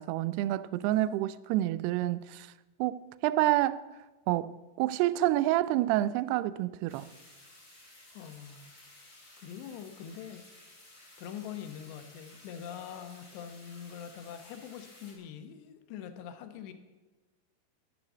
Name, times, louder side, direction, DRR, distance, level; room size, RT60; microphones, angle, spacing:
voice 1, 0.0-2.5 2.8-3.8 4.3-7.1, right 15 dB, 85° right, 2.4 m, -28 dB
sound 1, 6.9-15.1, left 2 dB, 20° left, 3.3 m, -55 dB
voice 2, 8.1-8.7 9.4-10.4 11.2-16.7, left 8 dB, 80° left, 3.2 m, -44 dB
10.5 x 10.5 x 7.2 m
omnidirectional pair, 5.0 m